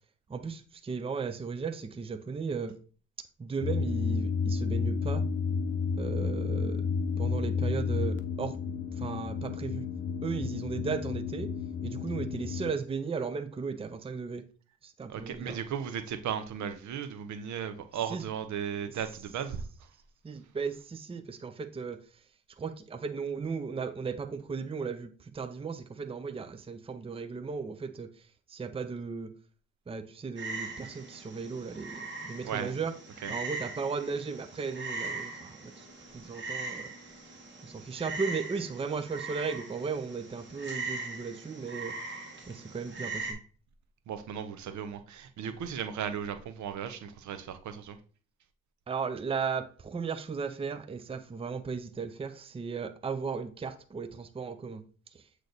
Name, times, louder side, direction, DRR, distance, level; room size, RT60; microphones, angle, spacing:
voice 1, 0.3-2.8 3.4-5.3 6.0-6.9 7.2-8.6 8.9-9.8 10.2-11.5 11.8-14.4 14.8-15.6 18.1-18.2 18.8-19.0 20.2-22.1 22.6-29.3 29.9-32.9 33.3-35.9 36.1-36.9 37.6-42.0 42.5-43.4 48.9-54.8 55.1-55.3, right 5 dB, 20° right, 0.6 m, -36 dB
sound 1, 3.6-12.7, left 5 dB, 40° left, 0.8 m, -31 dB
voice 2, 15.1-19.6 32.4-32.8 33.2-33.3 44.1-48.0, right 8 dB, 70° right, 0.9 m, -36 dB
Frog, 30.4-43.3, right 3 dB, 40° right, 1.9 m, -40 dB
7.9 x 3.2 x 4.0 m
cardioid pair, 90°, 30 cm